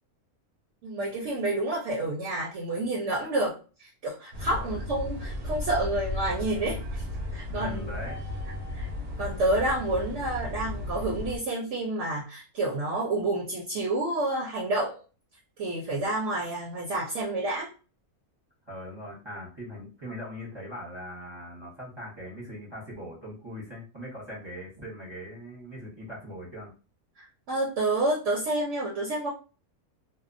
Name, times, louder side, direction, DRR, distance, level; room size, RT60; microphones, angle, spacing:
voice 1, 0.8-7.0 7.3-7.9 8.7-8.9 9.2-15.0 15.6-17.7 27.2-29.3, right 2 dB, 65° right, -3 dB, 0.8 m, -29 dB
sound 1, 4.3-11.4, left 1 dB, 85° right, 1.1 m, -35 dB
voice 2, 4.4-4.8 7.5-8.2 18.7-26.7, left 1 dB, 25° right, -6 dB, 0.7 m, -40 dB
2.7 x 2.0 x 2.4 m, 0.35 s
omnidirectional pair, 1.5 m